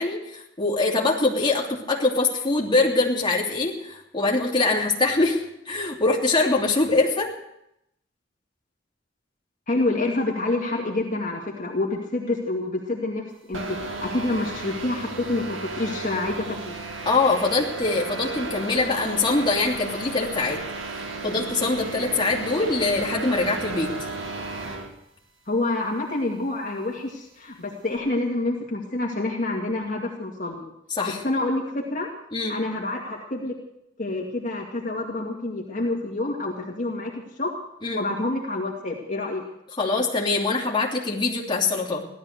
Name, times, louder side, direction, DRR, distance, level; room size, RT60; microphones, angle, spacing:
voice 1, 0.0-7.3 17.0-20.6 21.2-24.1 31.0-31.2 32.3-32.6 37.8-38.0 39.8-42.0, left 3 dB, 25° left, -2 dB, 2.9 m, -23 dB
voice 2, 9.7-13.2 13.5-16.8 25.5-30.7 31.2-32.1 32.5-33.5 34.0-37.5 37.9-39.4, left 2 dB, 40° left, -3 dB, 2.2 m, -27 dB
sound 1, 13.5-24.9, right 3 dB, 85° right, 2.2 m, -34 dB
16.5 x 12.5 x 6.7 m, 0.81 s
head